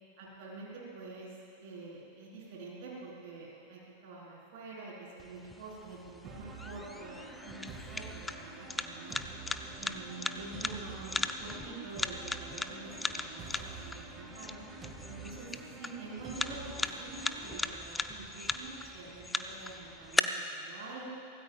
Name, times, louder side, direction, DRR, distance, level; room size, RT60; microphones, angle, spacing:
voice 1, 0.2-9.2 9.8-14.7 15.1-21.0, right 3 dB, 50° right, -5 dB, 4.2 m, -47 dB
sound 1, 5.2-20.2, left 3 dB, 10° left, 0.6 m, -38 dB
sound 2, 6.2-17.7, right 4 dB, 25° right, 1.9 m, -48 dB
24.5 x 17.0 x 2.4 m, 2.5 s
figure-of-eight pair, 90°, 0 cm